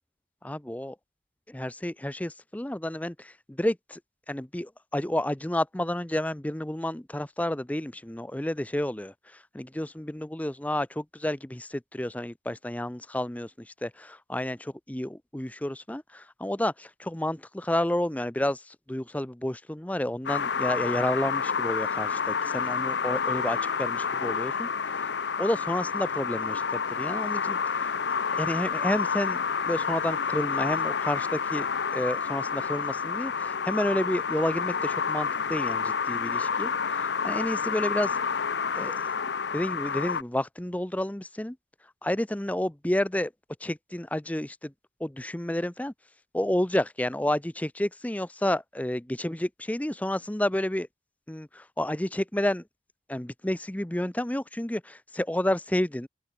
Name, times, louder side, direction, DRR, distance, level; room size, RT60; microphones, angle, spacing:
voice 1, 0.4-1.0 1.5-4.0 4.3-24.7 25.4-27.9 28.4-38.2 38.8-39.0 39.5-41.6 42.0-43.3 43.6-44.7 45.0-45.9 46.3-50.9 51.3-52.6 53.1-56.1, left 1 dB, 10° left, 0.5 m, -30 dB
sound 1, 20.3-40.2, left 6 dB, 70° left, 0.7 m, -29 dB
open air
head